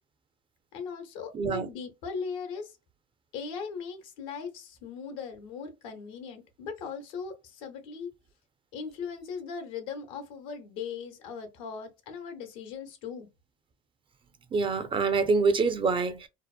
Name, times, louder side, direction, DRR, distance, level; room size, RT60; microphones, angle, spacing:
voice 1, 0.7-2.8 3.3-8.1 8.7-13.3, left 6 dB, 80° left, 0.8 m, -39 dB
voice 2, 1.3-1.7 14.5-16.3, right 4 dB, 30° right, 0.4 m, -25 dB
2.8 x 2.0 x 2.3 m
supercardioid pair, 85°, 17 cm